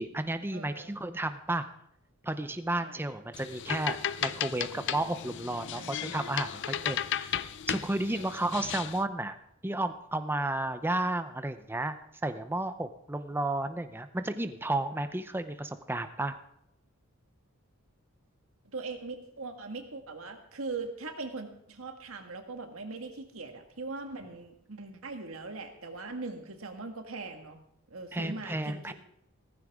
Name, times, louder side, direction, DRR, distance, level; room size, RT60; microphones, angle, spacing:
voice 1, 0.0-1.7 2.2-7.3 7.7-9.4 9.6-12.0 12.2-16.3 28.1-28.9, right 2 dB, 10° right, 9 dB, 0.6 m, -32 dB
voice 2, 0.5-1.0 2.8-3.0 5.7-6.1 6.7-7.0 8.0-8.3 18.6-27.6 27.9-28.9, right 3 dB, 70° right, 5 dB, 1.7 m, -41 dB
sound 1, 3.3-9.0, left 9 dB, 55° left, 0.5 m, -35 dB
16.0 x 14.5 x 3.6 m, 0.73 s
head